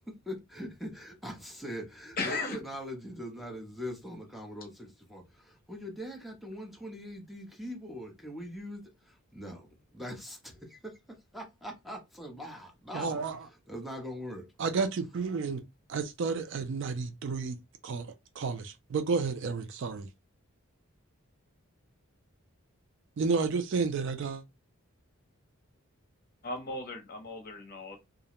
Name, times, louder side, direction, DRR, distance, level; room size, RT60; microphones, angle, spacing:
voice 1, 0.1-13.2 13.7-14.5, equal, ahead, 0.6 m, -42 dB
voice 2, 2.2-2.6 26.4-28.0, left 3 dB, 40° left, 0.7 m, -36 dB
voice 3, 12.9-13.5 14.6-15.6 15.9-17.6 17.8-20.1 23.2-24.4, right 4 dB, 55° right, 0.3 m, -31 dB
2.4 x 2.1 x 2.8 m
head